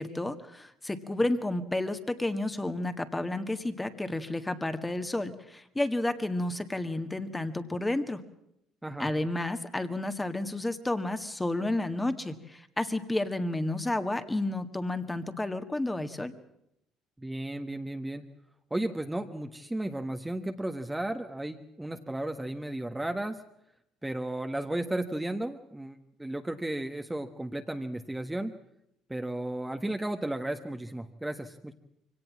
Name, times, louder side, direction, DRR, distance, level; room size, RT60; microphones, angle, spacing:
voice 1, 0.0-8.2 9.0-16.3, left 2 dB, 15° left, 9 dB, 1.8 m, -31 dB
voice 2, 17.2-18.2 18.7-23.4 24.0-28.5 29.1-31.7, right 1 dB, 10° right, 5 dB, 1.4 m, -34 dB
23.5 x 18.0 x 7.4 m, 0.77 s
supercardioid pair, 70°, 0 cm